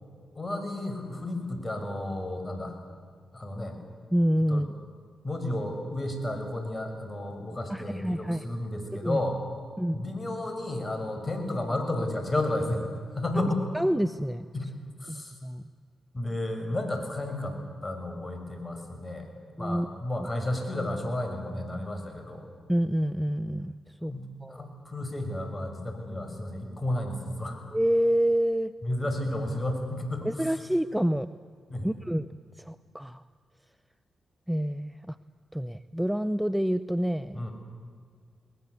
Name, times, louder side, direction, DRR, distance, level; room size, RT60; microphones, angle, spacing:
voice 1, 0.3-2.8 3.3-3.8 4.5-4.6 5.2-9.4 9.9-12.8 13.1-13.6 14.5-14.7 15.0-15.4 16.1-17.6 17.8-19.3 19.6-22.4 24.0-27.6 28.8-30.6 31.7-31.9 37.3-37.5, left 1 dB, 30° left, 5 dB, 6.4 m, -32 dB
voice 2, 4.1-4.7 7.7-8.4 9.0-9.2 9.8-10.0 13.7-14.5 15.1-15.6 19.6-19.9 22.7-23.7 24.0-24.1 24.4-24.7 27.7-28.7 30.2-31.3 31.8-32.3 32.6-33.2 34.5-35.2 35.5-37.4, equal, 5° right, 13 dB, 0.8 m, -27 dB
22.0 x 20.0 x 8.3 m, 2.1 s
hypercardioid pair, 40°, 0 cm